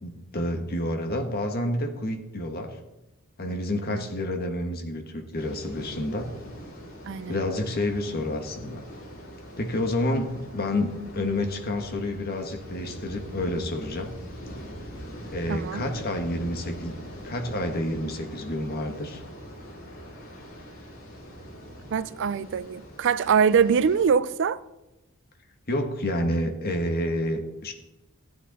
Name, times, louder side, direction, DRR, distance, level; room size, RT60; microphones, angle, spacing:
voice 1, 0.0-2.7 3.4-6.3 7.3-8.8 9.6-14.1 15.3-16.9 17.2-19.2 25.7-27.7, left 1 dB, 45° left, 1.5 m, -29 dB
sound 1, 5.3-24.1, equal, 80° left, 5.3 m, -42 dB
voice 2, 7.1-7.4 15.5-15.8 21.9-24.6, right 6 dB, 60° right, 0.4 m, -23 dB
14.0 x 9.5 x 4.1 m
head